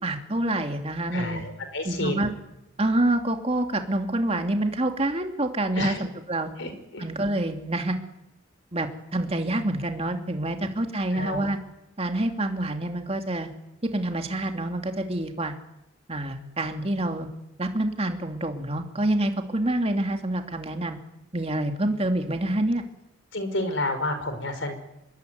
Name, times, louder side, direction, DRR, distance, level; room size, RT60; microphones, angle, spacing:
voice 1, 0.0-1.4 1.8-2.3 2.8-6.5 7.0-8.0 8.7-11.6 12.0-13.5 13.8-15.6 16.1-17.3 17.6-21.0 21.3-22.8, right 1 dB, 30° right, 5 dB, 2.7 m, -27 dB
voice 2, 1.1-2.3 5.8-6.0 6.6-7.0 11.1-11.5 23.3-24.7, left 1 dB, 60° left, 9 dB, 5.3 m, -30 dB
26.0 x 22.0 x 9.5 m, 0.87 s
head